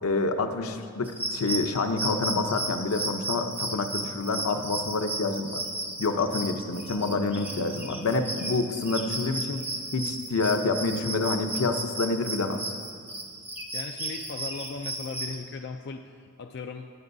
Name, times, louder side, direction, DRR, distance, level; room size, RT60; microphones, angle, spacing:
voice 1, 0.0-5.6 6.0-9.6 9.9-12.6, left 3 dB, 80° left, 6 dB, 0.7 m, -27 dB
sound 1, 1.0-15.3, right 2 dB, 10° right, 0.7 m, -34 dB
voice 2, 13.7-16.9, left 4 dB, 50° left, 4 dB, 0.4 m, -38 dB
19.0 x 6.9 x 2.6 m, 2.1 s
head